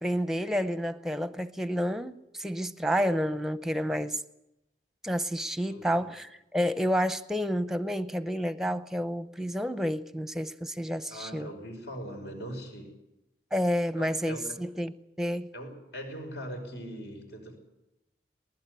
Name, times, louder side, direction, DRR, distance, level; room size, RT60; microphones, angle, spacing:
voice 1, 0.0-4.2 5.0-11.5 13.5-15.5, equal, ahead, 0.7 m, -30 dB
voice 2, 5.6-6.1 11.1-12.9 13.9-14.6 15.5-17.6, equal, 75° left, 5.7 m, -41 dB
19.5 x 19.5 x 8.2 m
head